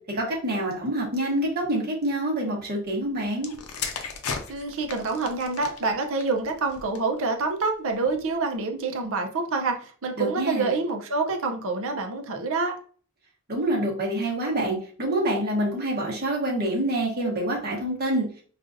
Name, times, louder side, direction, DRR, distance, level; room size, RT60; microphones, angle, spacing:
voice 1, 0.1-3.5 10.2-10.7 13.5-18.3, right 1 dB, 45° right, -2 dB, 1.1 m, -26 dB
sound 1, 3.4-7.2 8.0-8.3, left 5 dB, 70° left, 0.6 m, -36 dB
voice 2, 4.5-12.8, right 3 dB, 65° right, 4 dB, 0.7 m, -27 dB
5.4 x 2.5 x 2.6 m, 0.43 s
head